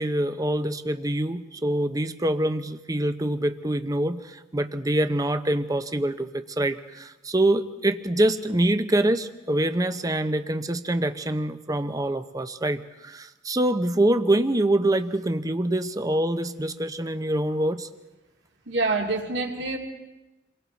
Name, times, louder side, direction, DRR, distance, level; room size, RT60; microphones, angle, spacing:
voice 1, 0.0-17.9, right 1 dB, 20° right, 10 dB, 0.8 m, -25 dB
voice 2, 18.7-19.8, right 3 dB, 70° right, 1 dB, 2.7 m, -26 dB
29.0 x 22.0 x 4.1 m, 1.0 s
head